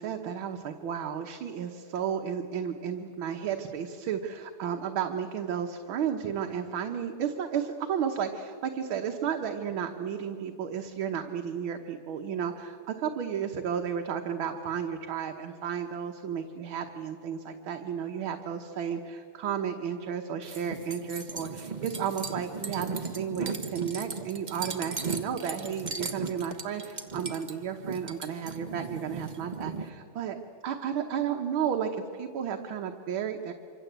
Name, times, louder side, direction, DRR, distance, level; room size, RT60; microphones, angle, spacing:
voice 1, 0.0-30.4 30.6-33.5, right 8 dB, 70° right, 4 dB, 1.8 m, -33 dB
sound 1, 20.4-29.9, right 4 dB, 25° right, 1.1 m, -37 dB
26.5 x 25.0 x 8.1 m, 2.6 s
omnidirectional pair, 2.4 m